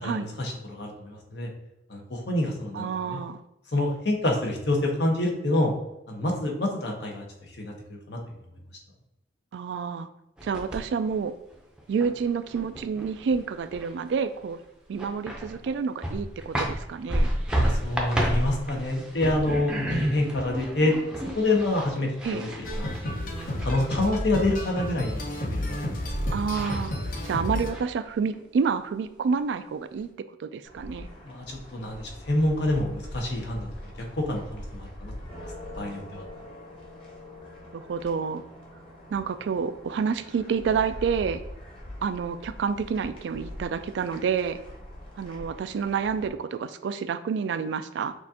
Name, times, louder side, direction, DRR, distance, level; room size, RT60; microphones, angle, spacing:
voice 1, 0.0-1.5 1.9-3.2 3.7-5.7 6.1-7.2 7.6-8.2 17.5-20.9 21.3-22.5 22.8-23.3 23.6-26.1 31.2-33.9 34.2-35.1 35.8-36.2, left 2 dB, 65° left, 0 dB, 1.0 m, -27 dB
voice 2, 2.7-3.4 9.5-10.1 10.4-11.3 11.9-14.6 14.9-17.3 22.2-22.4 26.3-26.9 27.2-30.1 30.4-31.1 37.7-38.4 39.1-41.4 42.0-44.6 45.2-48.1, right 6 dB, 75° right, 12 dB, 0.3 m, -28 dB
sound 1, 10.4-11.1 11.5-14.1 14.4-14.5 14.9-15.7 16.0-24.6 26.1-26.2 26.5-27.3 27.7-28.4, equal, 5° right, 0.6 m, -31 dB
sound 2, 22.6-27.7, left 1 dB, 50° left, 0.7 m, -31 dB
sound 3, 30.6-46.3, left 1 dB, 30° left, 1.2 m, -43 dB
6.2 x 2.5 x 2.7 m, 0.90 s
head